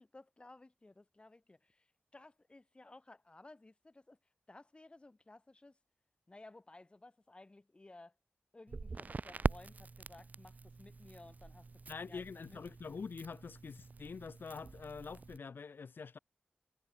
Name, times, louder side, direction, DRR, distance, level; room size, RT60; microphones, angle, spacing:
voice 1, 0.0-1.9 2.1-4.2 4.5-5.8 6.3-8.1 8.5-11.7 12.1-12.6, left 2 dB, 30° left, 7.9 m, -57 dB
Crackle, 8.7-15.4, right 4 dB, 50° right, 2.0 m, -43 dB
voice 2, 11.9-16.2, left 5 dB, 80° left, 3.3 m, -45 dB
wide cardioid pair, 90°, 4 cm